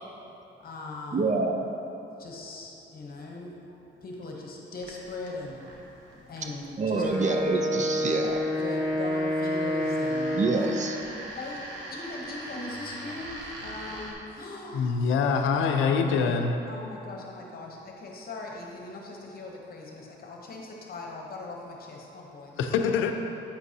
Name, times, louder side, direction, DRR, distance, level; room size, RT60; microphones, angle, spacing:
voice 1, 0.1-1.4 2.2-7.0 8.5-10.7 11.3-15.0 15.6-16.4 16.7-23.0, left 2 dB, 50° left, -1 dB, 0.9 m, -40 dB
voice 2, 1.1-1.6 6.8-8.4 10.3-11.0, right 3 dB, 40° right, 4 dB, 0.5 m, -27 dB
sound 1, 4.8-14.1, right 1 dB, 70° right, 1.1 m, -43 dB
Wind instrument woodwind instrument, 6.9-11.0, left 1 dB, 20° right, 1.4 m, -28 dB
voice 3, 14.7-16.6 22.6-23.1, left 5 dB, 85° left, 5 dB, 0.5 m, -24 dB
8.2 x 6.0 x 2.7 m, 2.9 s
cardioid pair, 90°, 20 cm